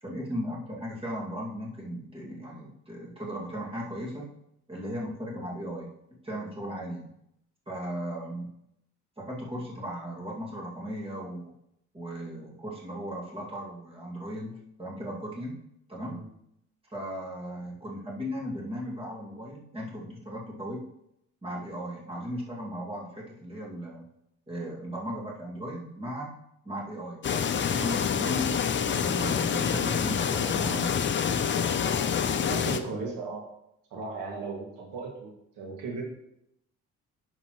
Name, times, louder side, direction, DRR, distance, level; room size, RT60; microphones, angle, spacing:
voice 1, 0.0-4.3 4.7-5.9 6.2-7.1 7.7-8.5 9.2-11.5 11.9-15.6 15.9-16.2 16.9-20.8 21.4-24.1 24.5-26.3 26.6-27.2 27.5-28.6 29.0-30.9, equal, 20° right, -4 dB, 2.2 m, -36 dB
sound 1, 27.2-32.8, left 7 dB, 40° left, 0.6 m, -27 dB
voice 2, 32.4-33.5 33.9-36.0, right 4 dB, 85° right, -1 dB, 2.1 m, -36 dB
9.5 x 6.8 x 3.1 m, 0.80 s
cardioid pair, 105°, 31 cm